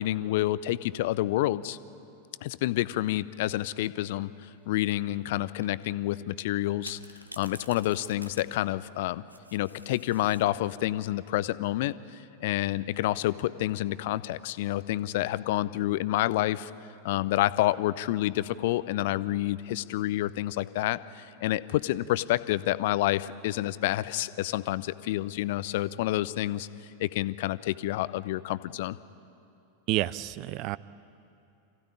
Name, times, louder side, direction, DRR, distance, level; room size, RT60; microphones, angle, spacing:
voice 1, 0.0-1.8 2.4-7.0 7.4-9.2 9.5-16.7 17.0-26.7 27.0-29.0, left 15 dB, 50° left, 17 dB, 0.6 m, -28 dB
sound 1, 3.6-4.0 4.9-5.3 5.6-5.9 6.8-10.8 12.4-12.9, right 1 dB, 85° right, 0.9 m, -49 dB
voice 2, 29.9-30.8, right 16 dB, 40° right, 20 dB, 0.5 m, -29 dB
25.5 x 15.5 x 9.9 m, 2.8 s
figure-of-eight pair, 90°, 0 cm